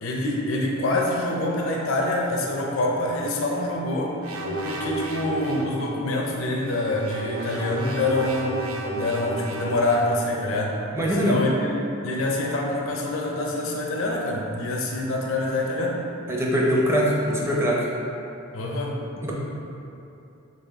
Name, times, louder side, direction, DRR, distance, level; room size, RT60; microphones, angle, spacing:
voice 1, 0.0-4.2 4.6-10.8 11.1-11.7 12.0-16.0 18.5-19.0, left 1 dB, 70° left, -1 dB, 0.6 m, -26 dB
sound 1, 4.2-5.8 6.6-10.2, right 1 dB, 85° right, 0.5 m, -32 dB
voice 2, 10.9-11.4 16.3-17.8 19.2-19.3, equal, 10° right, -4 dB, 0.5 m, -22 dB
4.1 x 3.5 x 3.5 m, 2.8 s
head